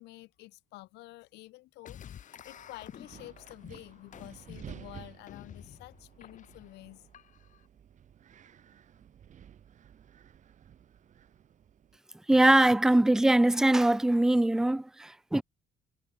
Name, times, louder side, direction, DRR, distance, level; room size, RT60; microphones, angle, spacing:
voice 1, 0.0-7.0, left 20 dB, 90° left, 5.8 m, -49 dB
sound 1, 1.8-7.7, left 9 dB, 50° left, 1.3 m, -50 dB
Wind, 2.4-12.0, right 9 dB, 45° right, 1.5 m, -53 dB
voice 2, 12.3-15.4, right 1 dB, 5° right, 0.3 m, -22 dB
cardioid pair, 110°, 17 cm